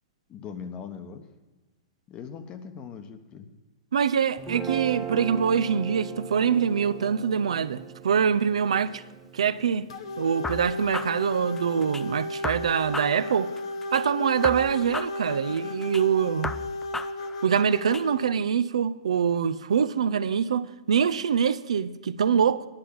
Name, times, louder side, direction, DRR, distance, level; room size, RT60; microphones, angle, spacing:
voice 1, 0.3-1.3 2.1-3.5, left 7 dB, 30° left, 1.0 m, -40 dB
voice 2, 3.9-9.0 9.3-9.9 10.2-13.5 13.9-16.6 17.4-22.7, right 7 dB, 80° right, 0.4 m, -24 dB
Guitar, 4.4-10.7, right 7 dB, 10° right, 1.2 m, -39 dB
sound 1, 9.9-18.3, left 2 dB, 70° left, 0.8 m, -34 dB
sound 2, 10.4-12.0 12.4-14.0 14.4-16.0 16.4-18.0, left 3 dB, 10° left, 0.4 m, -36 dB
10.5 x 5.7 x 8.4 m
hypercardioid pair, 125°, 3 cm